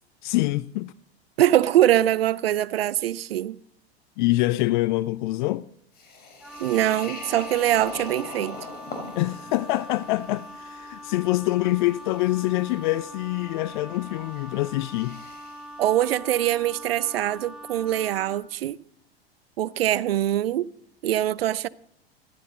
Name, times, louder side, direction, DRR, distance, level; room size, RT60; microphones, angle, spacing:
voice 1, 0.2-0.9 4.2-5.7 9.1-15.2, left 18 dB, 50° left, 0.5 m, -25 dB
voice 2, 1.4-3.6 6.6-8.6 15.8-18.8 19.6-20.7 21.0-21.7, right 12 dB, 70° right, 0.6 m, -23 dB
sound 1, 5.9-15.7, left 3 dB, 30° left, 3.9 m, -43 dB
Wind instrument woodwind instrument, 6.4-18.5, right 1 dB, ahead, 2.2 m, -42 dB
14.5 x 13.0 x 4.0 m
hypercardioid pair, 95°, 31 cm